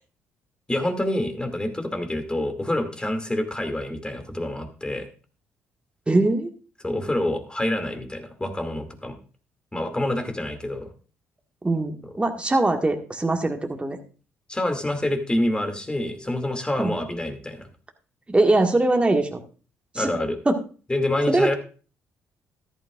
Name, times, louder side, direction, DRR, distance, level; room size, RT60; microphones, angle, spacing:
voice 1, 0.7-5.1 6.8-9.2 9.7-10.9 14.5-17.7 19.9-20.4 20.9-21.5, left 1 dB, 15° left, 6 dB, 2.4 m, -27 dB
voice 2, 6.1-6.5 11.6-14.0 16.8-16.9 18.3-19.4 20.0-20.1 20.5-20.6 21.3-21.5, right 2 dB, 20° right, 3 dB, 1.7 m, -21 dB
13.5 x 11.0 x 2.5 m, 0.36 s
supercardioid pair, 60°, 6 cm